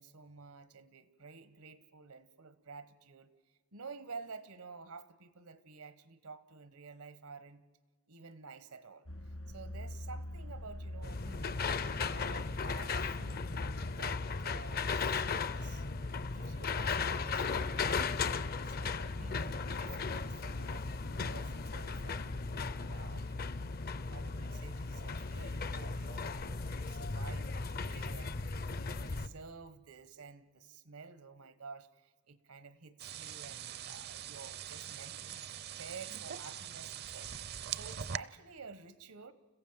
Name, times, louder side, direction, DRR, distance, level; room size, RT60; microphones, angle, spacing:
voice 1, 0.0-3.3 3.7-7.6 8.1-11.6 12.0-13.5 13.9-15.9 16.3-18.2 18.6-22.4 22.9-23.8 24.1-28.5 28.8-39.3, right 4 dB, 85° right, 14 dB, 1.2 m, -51 dB
sound 1, 9.1-14.1, left 1 dB, 70° left, 2.2 m, -45 dB
sound 2, 11.0-29.3, left 4 dB, 45° left, 0.6 m, -36 dB
sound 3, 33.0-38.2, right 9 dB, 45° right, 0.6 m, -42 dB
29.5 x 15.5 x 7.4 m, 1.4 s
head